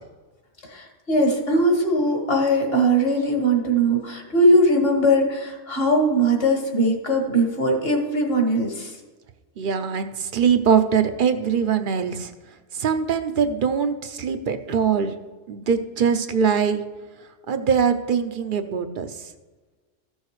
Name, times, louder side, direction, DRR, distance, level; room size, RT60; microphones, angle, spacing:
voice 1, 0.7-8.9, right 1 dB, 55° left, 1 dB, 1.8 m, -20 dB
voice 2, 9.6-12.3 12.7-15.2 15.5-16.8 17.5-19.3, right 6 dB, 55° right, 9 dB, 0.7 m, -22 dB
14.5 x 6.4 x 3.1 m, 1.3 s
omnidirectional pair, 1.2 m